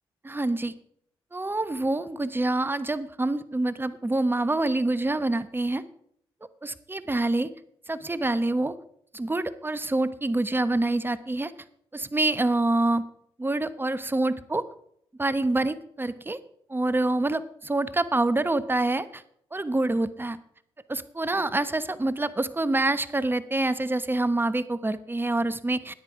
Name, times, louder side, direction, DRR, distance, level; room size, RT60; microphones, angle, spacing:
voice 1, 0.2-0.7 1.3-5.8 6.6-7.5 7.9-8.8 9.1-11.5 11.9-13.0 13.4-14.6 15.2-16.4 16.7-19.2 19.5-20.4 20.9-25.9, right 2 dB, 20° right, 14 dB, 1.0 m, -26 dB
13.5 x 9.7 x 4.8 m, 0.68 s
supercardioid pair, 50°, 11 cm